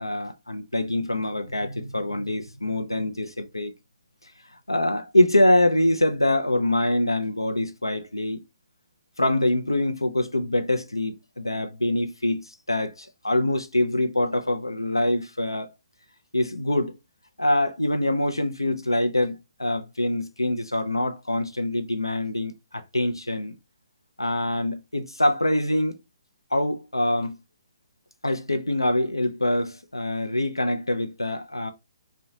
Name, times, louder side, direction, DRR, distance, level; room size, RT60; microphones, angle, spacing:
voice 1, 0.0-3.7 4.7-8.4 9.2-15.7 16.3-17.0 17.4-23.6 24.2-26.0 26.5-27.4 28.2-31.7, left 1 dB, 85° left, 0.4 m, -24 dB
3.7 x 2.2 x 2.6 m
figure-of-eight pair, 130°, 2 cm